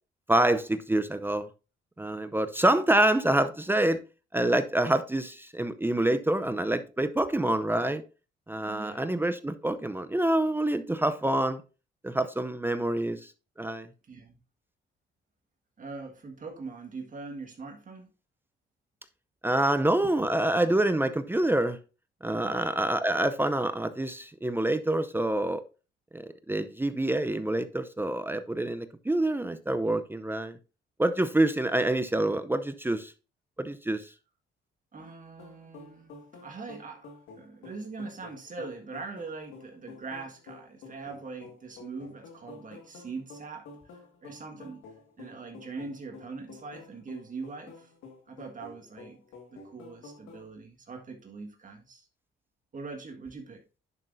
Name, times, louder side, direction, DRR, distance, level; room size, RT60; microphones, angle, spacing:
voice 1, 0.3-1.5 2.0-4.0 4.3-8.0 8.5-11.6 12.0-13.3 13.6-13.9 19.4-21.8 22.2-25.6 26.1-30.6 31.0-33.1 33.6-34.1, right 1 dB, 10° right, 0.6 m, -26 dB
voice 2, 8.6-9.1 14.0-14.4 15.8-18.1 22.4-22.8 34.9-44.8 45.2-47.9 48.3-49.2 49.5-52.1 52.7-53.6, right 4 dB, 40° right, 1.6 m, -42 dB
sound 1, 35.4-50.5, left 4 dB, 90° left, 2.0 m, -50 dB
10.5 x 6.0 x 2.6 m
cardioid pair, 90°, 20 cm